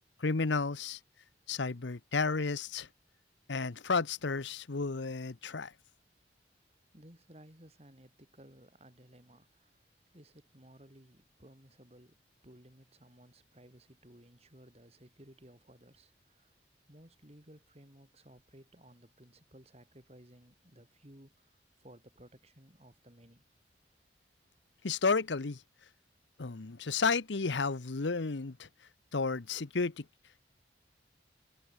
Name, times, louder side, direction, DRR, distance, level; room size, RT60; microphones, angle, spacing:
voice 1, 0.2-1.0 1.5-2.9 3.5-5.7 24.8-25.6 26.4-28.7 29.1-30.0, left 4 dB, 85° left, 0.9 m, -32 dB
voice 2, 6.7-9.8 10.1-12.2 12.4-16.6 16.9-23.4, right 1 dB, 35° right, 4.3 m, -58 dB
head